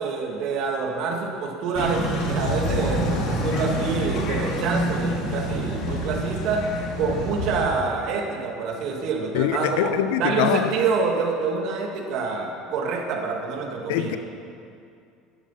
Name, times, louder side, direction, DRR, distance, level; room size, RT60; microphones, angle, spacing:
voice 1, 0.0-6.7 7.0-9.9 10.2-14.2, right 4 dB, 60° right, 1 dB, 2.2 m, -26 dB
sound 1, 1.7-7.6, equal, 60° left, 2.7 m, -27 dB
voice 2, 9.3-10.7 13.9-14.2, left 10 dB, 85° left, 10 dB, 0.8 m, -23 dB
12.5 x 10.5 x 5.8 m, 2.4 s
supercardioid pair, 120°, 0 cm